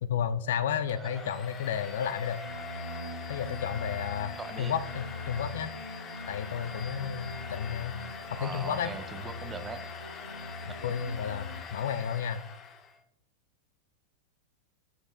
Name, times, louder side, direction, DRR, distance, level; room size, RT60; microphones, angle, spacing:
voice 1, 0.0-2.4 3.3-5.7 6.3-8.0 8.3-8.9 10.8-12.4, left 8 dB, 60° left, 13 dB, 0.4 m, -32 dB
Domestic sounds home sounds, 0.9-13.0, left 5 dB, 25° left, 0.8 m, -43 dB
voice 2, 0.9-1.4 4.4-4.7 8.4-9.9 10.7-10.8, right 4 dB, 15° right, 9 dB, 0.6 m, -41 dB
sound 1, 2.4-11.6, left 2 dB, 90° right, 0.5 m, -42 dB
7.8 x 6.2 x 2.3 m, 0.73 s
figure-of-eight pair, 90°, 0 cm